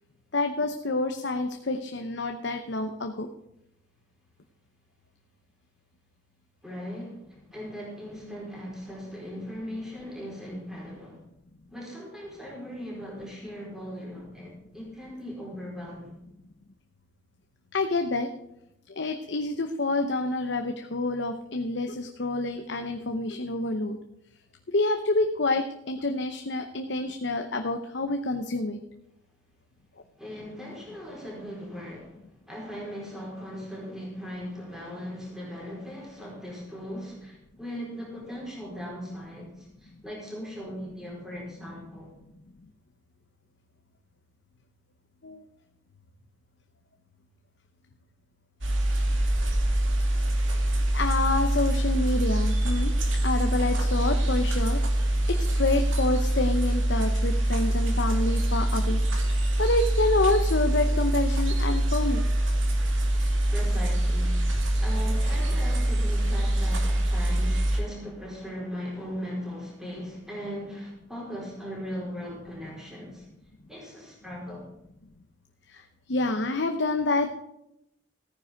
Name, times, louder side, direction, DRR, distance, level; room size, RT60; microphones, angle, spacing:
voice 1, 0.3-3.3 17.7-18.3 19.0-24.0 24.7-28.8 45.2-45.4 50.9-52.9 53.2-54.8 55.3-59.0 59.6-62.3 75.7-75.8 76.1-77.3, left 2 dB, 65° left, 5 dB, 0.8 m, -27 dB
voice 2, 6.6-7.2 7.5-11.2 11.7-16.2 30.2-32.2 32.5-42.1 63.5-64.5 64.8-73.2 73.7-74.6, equal, ahead, -4 dB, 4.4 m, -38 dB
sound 1, 48.6-67.8, right 1 dB, 85° right, 2.4 m, -24 dB
14.5 x 9.5 x 5.1 m, 0.83 s
head